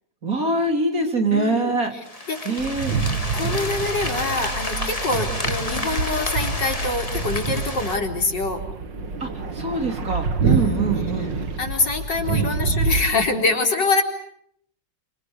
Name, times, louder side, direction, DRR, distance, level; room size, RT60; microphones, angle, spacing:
voice 1, 0.2-1.9 2.4-2.9 9.2-11.4 12.2-12.5, right 3 dB, 50° right, 4 dB, 4.4 m, -24 dB
voice 2, 1.3-1.7 2.3-2.4 3.3-8.6 10.4-10.8 11.6-14.0, left 3 dB, 80° left, 3 dB, 4.9 m, -24 dB
sound 1, 2.0-8.0, left 2 dB, 20° left, 2.4 m, -30 dB
sound 2, 2.6-13.1, right 4 dB, 90° right, 2.6 m, -27 dB
29.5 x 27.0 x 6.7 m, 0.69 s
omnidirectional pair, 1.9 m